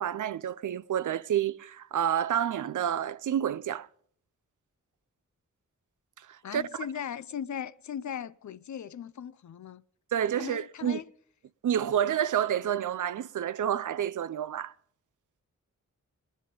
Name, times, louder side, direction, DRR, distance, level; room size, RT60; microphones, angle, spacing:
voice 1, 0.0-3.9 6.3-6.6 10.1-11.0 11.6-14.7, right 9 dB, 85° right, 0.5 m, -29 dB
voice 2, 6.4-9.8 10.4-11.1, left 8 dB, 70° left, 0.5 m, -38 dB
19.5 x 10.0 x 5.2 m
wide cardioid pair, 80°, 30 cm